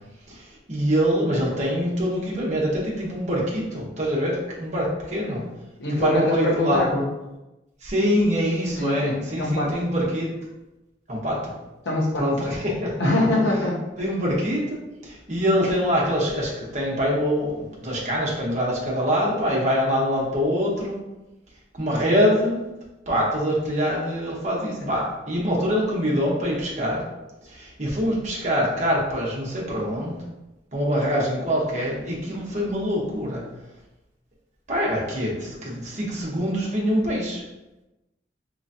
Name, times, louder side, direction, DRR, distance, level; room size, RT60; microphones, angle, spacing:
voice 1, 0.3-5.4 5.9-7.0 7.8-10.3 11.1-11.5 12.2-12.9 14.0-14.8 15.0-21.0 21.7-22.6 23.1-27.0 27.4-30.2 30.7-33.4 34.7-37.4, equal, 40° right, -4 dB, 1.0 m, -24 dB
voice 2, 5.8-7.1 8.8-9.8 11.8-12.3 13.0-14.1, left 1 dB, 75° left, -3 dB, 0.9 m, -23 dB
3.8 x 3.1 x 2.7 m, 1.0 s
head